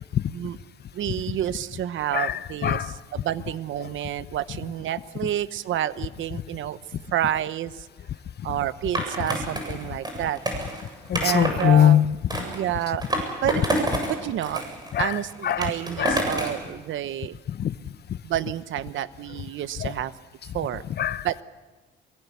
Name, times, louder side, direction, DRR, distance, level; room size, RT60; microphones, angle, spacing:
voice 1, 0.9-2.8 3.1-6.8 7.1-7.9 8.4-10.4 11.2-12.0 12.4-13.0 13.4-13.6 14.1-14.6 15.0-17.4 18.2-20.1 20.5-20.8 21.2-21.4, right 12 dB, 75° right, 1.0 m, -29 dB
voice 2, 2.1-2.9 3.8-3.9 11.1-12.4 14.9-15.7 16.0-16.3 17.5-17.7 19.8-19.9 21.0-21.4, left 10 dB, 55° left, 0.8 m, -23 dB
Skateboard, 9.0-11.7 12.3-14.1 14.4-16.6, right 1 dB, 20° right, 7.8 m, -28 dB
24.0 x 23.0 x 8.4 m
cardioid pair, 90°, 20 cm